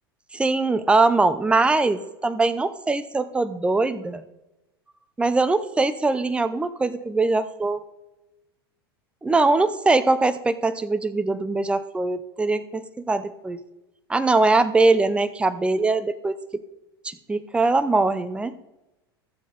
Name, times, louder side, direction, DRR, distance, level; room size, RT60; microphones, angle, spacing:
voice 1, 0.3-4.2 5.2-7.8 9.2-13.6 14.1-16.6 17.0-18.6, right 3 dB, 10° right, 12 dB, 0.6 m, -22 dB
13.0 x 7.4 x 4.0 m, 0.98 s
figure-of-eight pair, 90°, 13 cm